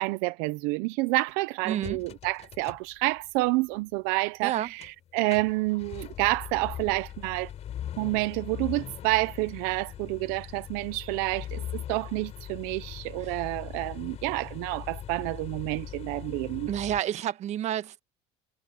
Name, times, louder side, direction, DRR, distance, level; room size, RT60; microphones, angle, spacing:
voice 1, 0.0-7.5 8.0-16.7, right 22 dB, 80° right, 0.7 m, -29 dB
voice 2, 1.6-2.0 4.4-4.7 13.2-13.4 16.7-18.0, right 11 dB, 50° right, 1.4 m, -30 dB
sound 1, 1.8-3.5 3.9-4.0 4.5-4.9 5.2-17.0, left 10 dB, 50° left, 4.4 m, -40 dB
supercardioid pair, 110°, 15 cm